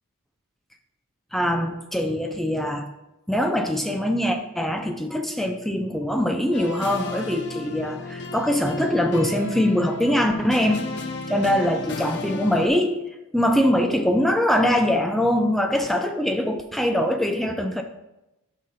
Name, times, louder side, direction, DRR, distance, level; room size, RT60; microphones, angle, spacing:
voice 1, 1.3-2.8 3.3-10.8 11.3-13.0 13.3-17.8, left 1 dB, ahead, 5 dB, 0.3 m, -23 dB
sound 1, 6.5-12.7, left 3 dB, 50° left, 0.6 m, -34 dB
6.4 x 5.6 x 4.0 m, 0.96 s
head